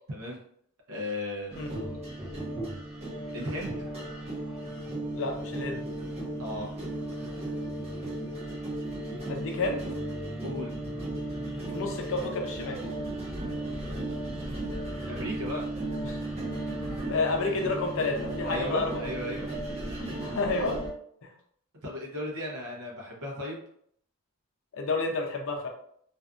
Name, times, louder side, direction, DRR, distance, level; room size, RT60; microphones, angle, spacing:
voice 1, 0.1-0.4 0.9-2.0 3.3-3.9 6.4-6.7 7.1-7.5 10.4-10.7 15.1-15.7 18.4-19.5 21.8-23.6, left 1 dB, 65° right, -2 dB, 0.7 m, -36 dB
sound 1, 1.5-20.9, right 1 dB, 30° right, 0.8 m, -35 dB
voice 2, 5.1-5.8 9.3-9.8 11.7-12.8 16.0-16.2 17.0-19.3 20.2-20.8 24.7-25.7, left 3 dB, 60° left, 2 dB, 0.5 m, -30 dB
2.5 x 2.3 x 2.4 m, 0.66 s
head